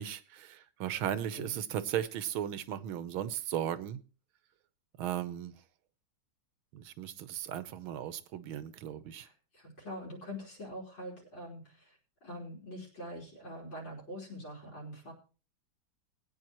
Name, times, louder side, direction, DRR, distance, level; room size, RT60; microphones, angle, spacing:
voice 1, 0.0-4.0 5.0-5.5 6.7-9.3, right 10 dB, 85° right, 14 dB, 1.7 m, -36 dB
voice 2, 9.1-15.1, equal, 65° left, -2 dB, 4.7 m, -44 dB
20.5 x 9.3 x 3.0 m, 0.35 s
omnidirectional pair, 2.2 m